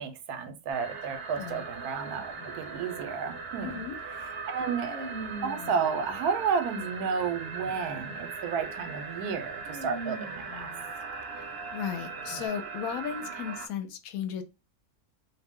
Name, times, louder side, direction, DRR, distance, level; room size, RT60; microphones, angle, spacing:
voice 1, 0.0-3.8 4.5-10.7, right 6 dB, 85° right, 1.1 m, -32 dB
sound 1, 0.7-13.7, right 4 dB, 55° right, 0.7 m, -39 dB
sound 2, 1.3-8.0 8.4-8.7 9.0-11.6 12.2-12.5, right 2 dB, 20° left, 0.7 m, -44 dB
voice 2, 3.6-4.0 11.4-14.4, left 8 dB, 75° left, 1.0 m, -35 dB
2.6 x 2.1 x 3.4 m
omnidirectional pair, 1.6 m